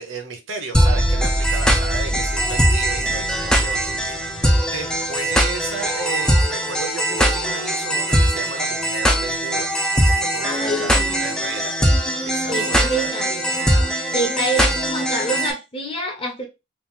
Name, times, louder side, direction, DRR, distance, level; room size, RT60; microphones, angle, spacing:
voice 1, 0.0-4.3 4.7-13.1, right 4 dB, 65° right, 0.7 m, -33 dB
sound 1, 0.7-15.5, equal, 5° left, 0.3 m, -20 dB
voice 2, 10.4-11.4 12.5-16.5, right 1 dB, 25° left, 0.8 m, -27 dB
3.0 x 2.3 x 3.6 m
head